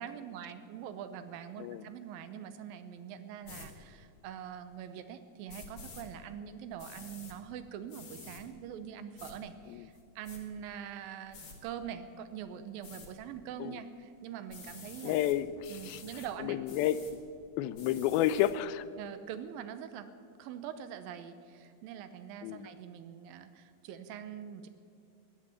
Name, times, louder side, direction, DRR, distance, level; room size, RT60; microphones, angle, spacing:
voice 1, 0.0-15.2 15.7-16.6 19.0-20.1 20.4-24.7, right 8 dB, 80° right, 11 dB, 2.5 m, -44 dB
sound 1, 3.4-3.7 5.5-6.0 6.8-7.3 7.9-8.4 9.2-9.3 9.9-10.4 11.3-11.6 12.8-13.1 14.5-15.4 15.6-16.3 16.6-17.1 17.7-18.5, left 4 dB, 40° left, 2.2 m, -49 dB
voice 2, 15.0-16.0 16.4-17.0 17.6-18.9 22.4-22.7, left 12 dB, 85° left, 16 dB, 2.4 m, -30 dB
14.5 x 10.5 x 9.3 m, 2.5 s
omnidirectional pair, 4.3 m